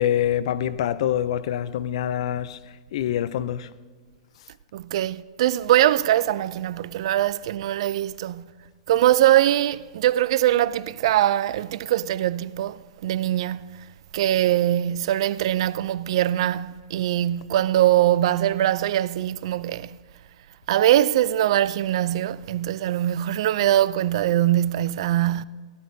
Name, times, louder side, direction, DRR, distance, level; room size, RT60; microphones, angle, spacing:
voice 1, 0.0-3.7, left 10 dB, 55° left, 0.5 m, -25 dB
voice 2, 4.7-8.4 8.9-13.7 14.1-19.9 20.7-25.4, right 13 dB, 50° right, 0.3 m, -22 dB
16.5 x 12.0 x 2.7 m
supercardioid pair, 170°, 4 cm